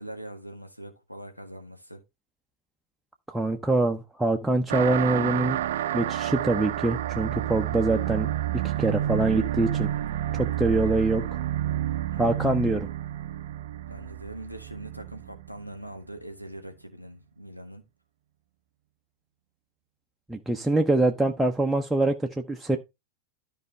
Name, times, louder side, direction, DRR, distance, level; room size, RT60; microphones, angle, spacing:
voice 1, 0.0-2.0 8.7-9.1 12.1-12.3 13.9-17.8, right 1 dB, 90° left, 1.6 m, -42 dB
voice 2, 3.3-5.6 5.9-8.3 8.5-9.9 10.3-11.4 12.2-12.9 20.3-22.8, right 2 dB, 5° right, 0.7 m, -24 dB
sound 1, 4.7-15.7, right 12 dB, 55° right, 0.5 m, -30 dB
13.0 x 4.8 x 3.2 m
figure-of-eight pair, 90°, 0 cm